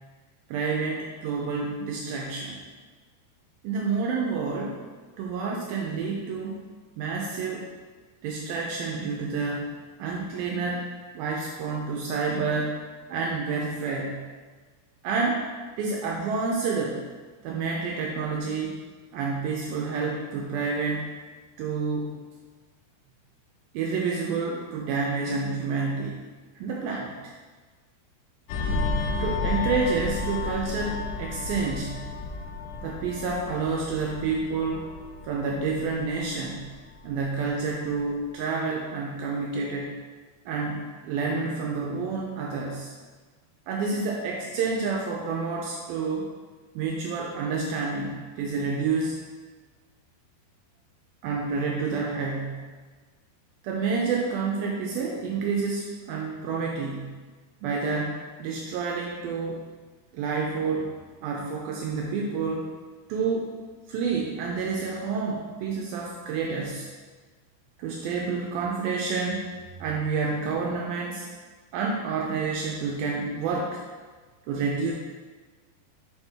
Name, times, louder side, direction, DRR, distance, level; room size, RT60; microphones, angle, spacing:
voice 1, 0.5-2.6 3.6-4.8 5.2-6.7 7.0-7.7 8.2-9.7 10.0-10.9 11.1-14.3 15.0-15.5 15.8-17.0 17.4-18.8 19.1-21.1 21.6-22.2 23.7-26.2 26.6-27.3 29.2-32.1 32.8-34.9 35.2-36.7 37.0-39.9 40.5-42.9 43.7-46.3 46.8-49.2 51.2-52.7 53.6-57.2 57.6-59.6 60.1-60.9 61.2-62.7 63.1-63.6 63.9-66.9 67.8-69.5 69.8-71.3 71.7-73.8 74.5-74.9, right 4 dB, 85° right, -1 dB, 2.1 m, -29 dB
sound 1, 28.5-37.5 37.9-38.1, left 3 dB, 85° left, 2.6 m, -32 dB
7.1 x 4.4 x 3.5 m, 1.4 s
omnidirectional pair, 4.7 m